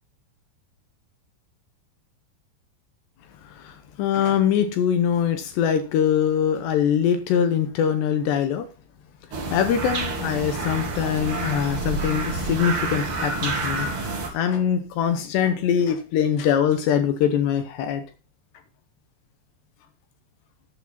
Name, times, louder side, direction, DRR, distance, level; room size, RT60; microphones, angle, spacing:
voice 1, 3.4-8.7 9.5-18.0, left 8 dB, 75° left, 9 dB, 2.8 m, -23 dB
sound 1, 9.3-14.3, right 3 dB, 40° right, 2.0 m, -28 dB
12.0 x 8.3 x 4.1 m, 0.31 s
omnidirectional pair, 5.7 m